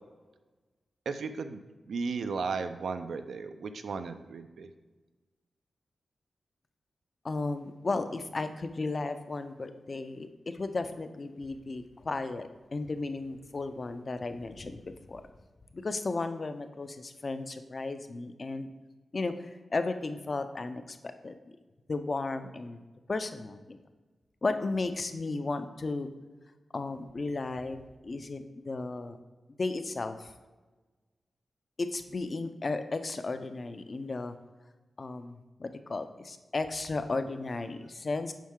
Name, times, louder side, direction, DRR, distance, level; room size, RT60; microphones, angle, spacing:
voice 1, 1.1-4.7, right 4 dB, 80° right, 9 dB, 0.5 m, -35 dB
voice 2, 7.2-15.2 15.7-18.7 19.1-19.3 19.7-21.0 21.2-21.3 21.9-23.8 24.4-26.1 26.7-27.8 28.0-29.2 29.6-30.3 31.8-34.3 35.0-38.3, left 3 dB, 35° left, 9 dB, 0.5 m, -34 dB
7.4 x 5.4 x 3.7 m, 1.3 s
wide cardioid pair, 135°, 0 cm